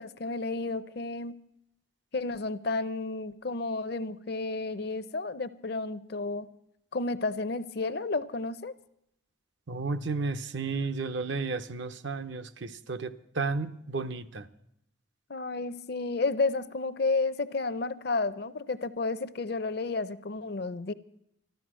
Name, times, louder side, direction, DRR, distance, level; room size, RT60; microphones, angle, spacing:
voice 1, 0.0-1.3 2.1-6.5 6.9-8.7 15.3-20.9, left 3 dB, 55° left, 0.6 m, -31 dB
voice 2, 9.7-14.5, right 4 dB, 65° right, 0.7 m, -33 dB
13.0 x 13.0 x 6.2 m
head